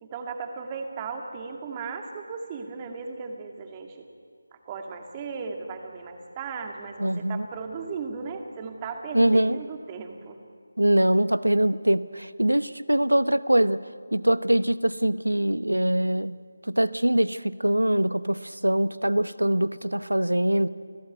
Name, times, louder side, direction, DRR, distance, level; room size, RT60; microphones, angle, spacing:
voice 1, 0.0-4.1 4.7-10.4, right 5 dB, 20° right, 3 dB, 2.3 m, -36 dB
voice 2, 7.0-7.5 9.1-9.6 10.8-13.8 14.1-16.4 16.7-20.7, right 1 dB, 90° right, 15 dB, 1.0 m, -23 dB
29.0 x 17.0 x 9.4 m, 2.1 s
figure-of-eight pair, 160°, 0 cm